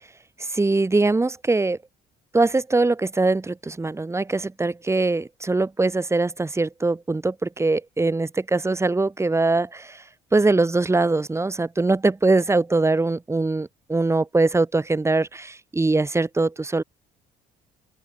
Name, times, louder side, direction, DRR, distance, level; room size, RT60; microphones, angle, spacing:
voice 1, 0.4-1.8 2.3-10.0 10.3-16.8, right 3 dB, 15° right, 6.5 m, -22 dB
open air
cardioid pair, 110°, 17 cm